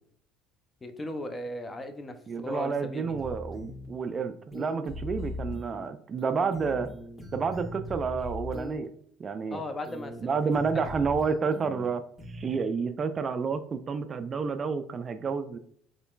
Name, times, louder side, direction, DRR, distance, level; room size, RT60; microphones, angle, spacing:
voice 1, 0.8-3.2 9.5-10.9, left 1 dB, 25° left, 7 dB, 0.6 m, -37 dB
voice 2, 2.3-6.9 7.3-8.9 9.2-9.6 10.2-12.0 12.3-15.6, right 5 dB, 35° right, 10 dB, 0.3 m, -30 dB
sound 1, 3.1-3.9 4.5-5.9 6.2-8.9 9.8-10.2 10.5-11.9 12.2-12.5, left 1 dB, 10° left, 1.3 m, -40 dB
4.2 x 3.1 x 2.3 m, 0.64 s
hypercardioid pair, 65°, 0 cm